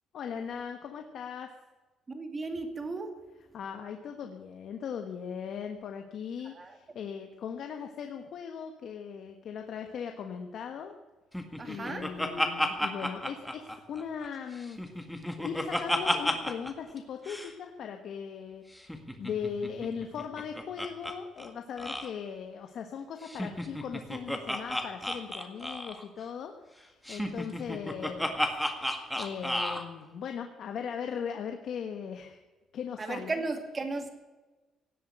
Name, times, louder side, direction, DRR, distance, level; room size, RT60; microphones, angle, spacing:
voice 1, 0.1-1.5 3.5-10.9 11.6-14.8 15.4-32.4 32.7-33.3, left 7 dB, 60° left, 5 dB, 1.3 m, -39 dB
voice 2, 2.1-3.1 6.5-6.8 11.6-12.1 12.7-12.9 33.0-34.1, right 3 dB, 25° right, 6 dB, 2.3 m, -35 dB
Laughter, 11.3-14.3 14.6-16.7 17.0-17.1 17.3-17.5 18.8-21.1 21.4-21.5 21.8-22.1 23.2-26.0 27.1-29.8, left 1 dB, 5° left, 1.9 m, -32 dB
17.5 x 7.8 x 9.0 m, 1.2 s
cardioid pair, 130°, 0 cm